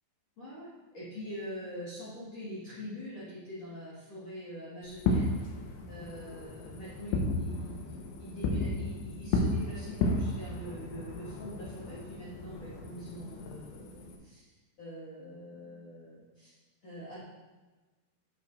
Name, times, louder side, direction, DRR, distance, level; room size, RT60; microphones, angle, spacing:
voice 1, 0.4-5.3 5.9-7.8 8.2-14.4 14.8-16.5 16.8-17.2, equal, 55° left, -10 dB, 1.9 m, -44 dB
Fireworks, 4.9-14.2, left 2 dB, 80° left, 2.9 m, -34 dB
8.6 x 7.5 x 2.5 m, 1.2 s
omnidirectional pair, 5.5 m